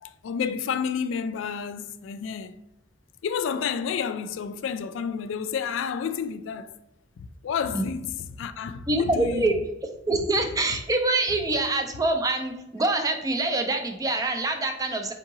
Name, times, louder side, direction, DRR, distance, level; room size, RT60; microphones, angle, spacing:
voice 1, 0.0-2.6 3.2-6.7 7.2-9.6, left 6 dB, 70° left, 0.3 m, -30 dB
voice 2, 8.9-9.6 10.1-15.1, right 2 dB, 20° right, 0.4 m, -25 dB
3.8 x 2.8 x 3.7 m
head